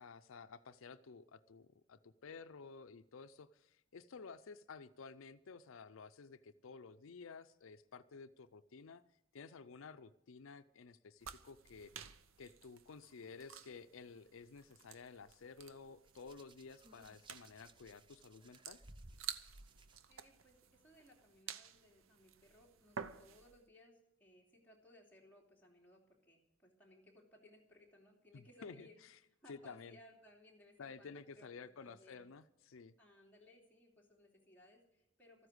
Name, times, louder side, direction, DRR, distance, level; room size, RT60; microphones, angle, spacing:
voice 1, 0.0-9.0 9.3-11.9 12.4-18.8 28.3-29.2 29.5-30.0 30.8-32.9, left 5 dB, 85° left, 12 dB, 0.5 m, -53 dB
sound 1, 11.2-23.6, right 7 dB, 85° right, 0.7 m, -52 dB
Hands, 16.1-20.0 21.0-21.2, right 2 dB, 25° right, 0.5 m, -61 dB
voice 2, 20.1-20.6 20.8-28.9 29.4-31.5 31.8-32.3 33.0-35.5, left 1 dB, 10° left, -3 dB, 2.8 m, -64 dB
13.5 x 9.8 x 7.9 m, 0.84 s
head